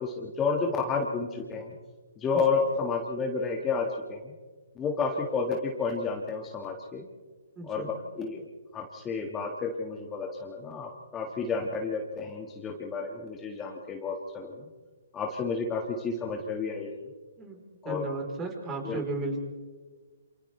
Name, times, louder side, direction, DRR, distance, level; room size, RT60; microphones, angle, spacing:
voice 1, 0.0-1.8 2.2-4.3 4.8-7.0 7.7-8.4 8.7-14.7 15.1-16.9 17.8-18.1 18.8-19.0, left 4 dB, 15° left, 1 dB, 1.8 m, -31 dB
voice 2, 7.6-7.9 17.4-19.4, right 2 dB, 20° right, 2 dB, 4.1 m, -35 dB
28.5 x 27.0 x 3.4 m, 1.4 s
hypercardioid pair, 145°, 0 cm